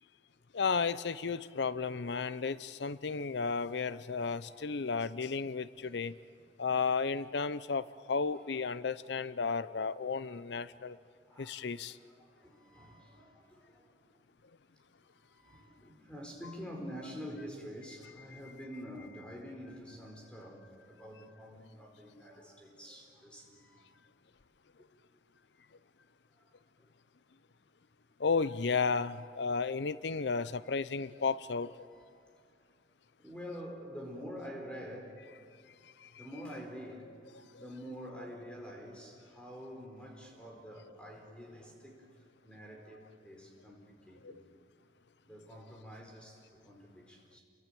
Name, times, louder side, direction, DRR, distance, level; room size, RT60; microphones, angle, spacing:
voice 1, 0.5-6.1 6.6-11.0 11.4-12.0 28.2-31.7 36.2-36.3 37.5-37.6 44.2-44.3, left 5 dB, 75° left, 16 dB, 0.6 m, -33 dB
voice 2, 11.3-11.6 12.0-13.9 15.1-24.0 26.4-26.5 26.8-26.9 31.9-32.2 33.2-35.2 36.2-42.1 42.4-44.4 45.2-47.4, equal, 5° left, 1 dB, 4.4 m, -47 dB
29.0 x 23.0 x 9.0 m, 2.2 s
head